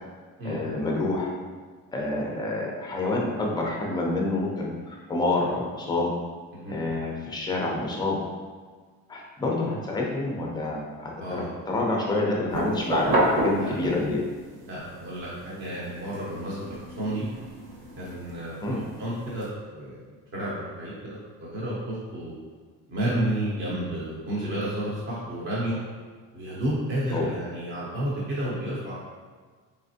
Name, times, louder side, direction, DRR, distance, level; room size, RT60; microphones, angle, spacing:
voice 1, 0.4-1.3 1.9-4.7 5.1-6.1 6.7-8.2 9.1-14.2 18.6-18.8 27.1-27.3, left 2 dB, 10° left, -1 dB, 0.4 m, -28 dB
voice 2, 11.2-11.5 13.5-14.0 14.7-16.6 17.0-17.3 18.0-20.0 20.3-22.3 22.9-25.8 26.3-29.0, right 1 dB, 35° right, -7 dB, 0.7 m, -31 dB
sound 1, 12.5-14.3 14.8-19.4, right 1 dB, 55° right, 1.0 m, -29 dB
4.1 x 3.3 x 2.7 m, 1.5 s
cardioid pair, 165°, 35 cm